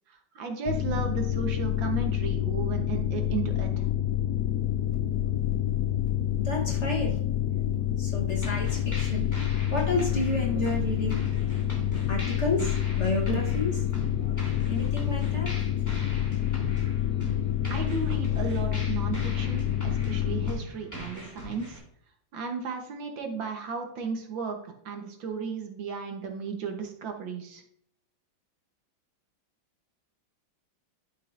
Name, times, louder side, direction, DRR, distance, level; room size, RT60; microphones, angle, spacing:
voice 1, 0.1-3.9 17.7-21.8 22.3-27.6, right 5 dB, 75° right, 4 dB, 1.8 m, -34 dB
sound 1, 0.7-20.5, left 11 dB, 80° left, 0.8 m, -28 dB
voice 2, 6.4-7.2 8.0-9.3 9.7-11.3 12.1-13.8 14.2-14.4 14.7-15.6, left 2 dB, 40° left, -1 dB, 1.4 m, -31 dB
sound 2, 8.4-21.8, right 1 dB, 10° left, 2.2 m, -42 dB
11.5 x 5.6 x 2.6 m, 0.68 s
omnidirectional pair, 2.2 m